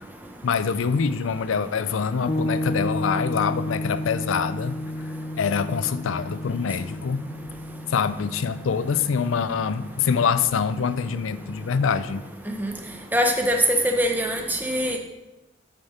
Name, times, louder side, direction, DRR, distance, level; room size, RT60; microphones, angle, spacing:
voice 1, 0.4-4.8 5.4-7.2 7.9-12.3, left 6 dB, 90° left, 14 dB, 0.4 m, -25 dB
sound 1, 2.3-11.9, left 1 dB, 25° left, 0.5 m, -33 dB
voice 2, 13.1-13.6 13.8-15.0, equal, 10° right, 3 dB, 0.7 m, -23 dB
9.9 x 5.2 x 4.2 m, 1.0 s
head